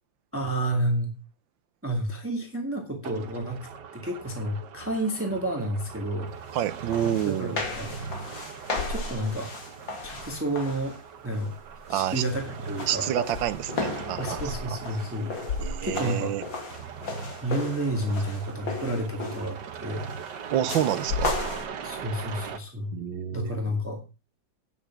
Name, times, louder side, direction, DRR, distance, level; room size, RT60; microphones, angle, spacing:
voice 1, 0.3-1.1 1.8-3.7 3.9-6.3 7.2-7.9 8.2-8.3 8.9-9.5 10.0-10.9 11.2-11.5 11.9-13.1 14.2-15.4 15.8-16.3 17.4-20.1 21.8-22.9 23.3-24.0, right 1 dB, 5° right, 2.0 m, -30 dB
sound 1, 3.0-22.6, right 6 dB, 70° right, 1.7 m, -40 dB
voice 2, 6.5-7.6 11.9-12.2 12.9-14.8 15.6-16.4 20.5-21.3 22.9-23.5, right 11 dB, 90° right, 1.5 m, -28 dB
sound 2, 6.6-6.7 6.9-11.0 11.4-11.8 12.1-19.6 20.7-21.7, left 3 dB, 90° left, 2.9 m, -34 dB
9.7 x 7.1 x 6.0 m
omnidirectional pair, 2.0 m